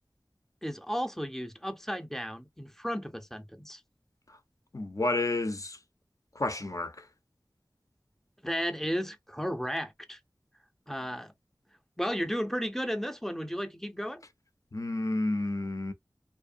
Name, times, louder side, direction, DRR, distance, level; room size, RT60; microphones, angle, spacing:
voice 1, 0.6-3.8 8.4-10.2 10.9-11.3 12.0-14.2, equal, 5° left, 0.5 m, -34 dB
voice 2, 4.7-5.8 6.4-7.0 14.7-15.9, left 2 dB, 50° left, 0.6 m, -30 dB
2.7 x 2.0 x 2.5 m
wide cardioid pair, 40°, 7 cm